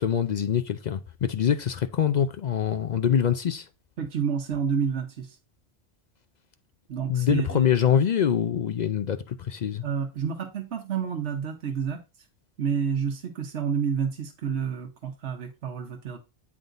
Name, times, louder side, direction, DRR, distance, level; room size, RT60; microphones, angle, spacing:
voice 1, 0.0-3.7 7.1-9.8, left 8 dB, 55° left, 0.5 m, -24 dB
voice 2, 4.0-5.4 6.9-7.7 9.8-12.0 12.6-16.2, right 7 dB, 80° right, 1.2 m, -29 dB
9.1 x 3.7 x 3.9 m
omnidirectional pair, 1.1 m